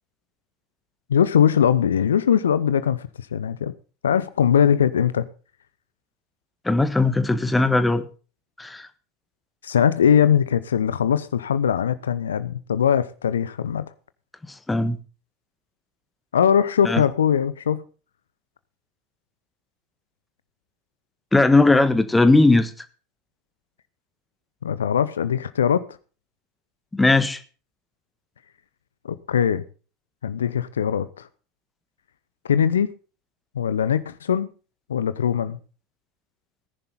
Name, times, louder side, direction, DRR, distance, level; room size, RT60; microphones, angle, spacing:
voice 1, 1.1-3.7 4.0-5.3 9.6-13.9 16.3-17.8 24.6-25.8 29.0-29.6 30.2-31.3 32.4-32.9 33.5-34.5 34.9-35.6, left 8 dB, 75° left, 0.8 m, -21 dB
voice 2, 6.6-8.1 8.6-8.9 14.7-15.0 16.8-17.0 21.3-22.7 26.9-27.4, left 2 dB, 10° left, 1.6 m, -18 dB
18.0 x 10.5 x 4.1 m
figure-of-eight pair, 80°, 0 cm